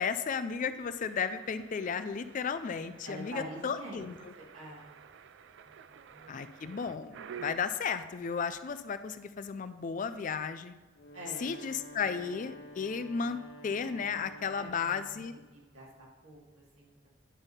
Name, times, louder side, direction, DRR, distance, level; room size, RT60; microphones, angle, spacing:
voice 1, 0.0-4.3 6.3-10.7 11.4-15.3, left 6 dB, 35° left, 11 dB, 0.3 m, -34 dB
sound 1, 1.0-7.5, right 7 dB, 55° right, 0.3 m, -50 dB
voice 2, 3.0-4.1 4.4-4.9 5.6-6.5 11.1-11.5 14.5-15.0 15.5-17.1, right 1 dB, 90° right, -4 dB, 2.3 m, -46 dB
Wind instrument woodwind instrument, 10.9-15.1, equal, 70° left, 1.0 m, -50 dB
9.8 x 3.5 x 5.5 m, 1.2 s
head